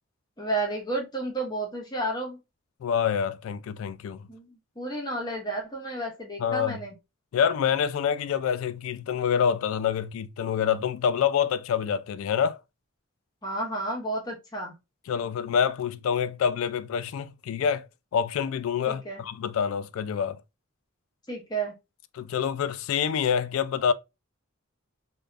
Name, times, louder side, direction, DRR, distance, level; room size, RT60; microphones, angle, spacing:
voice 1, 0.4-2.4 4.3-6.9 13.4-14.7 18.9-19.2 21.3-21.7, right 2 dB, 20° left, 0.6 m, -32 dB
voice 2, 2.8-4.2 6.4-6.8 7.3-12.6 15.1-17.9 18.1-20.4 22.1-23.9, left 7 dB, 75° left, 0.3 m, -26 dB
3.3 x 2.1 x 2.4 m
head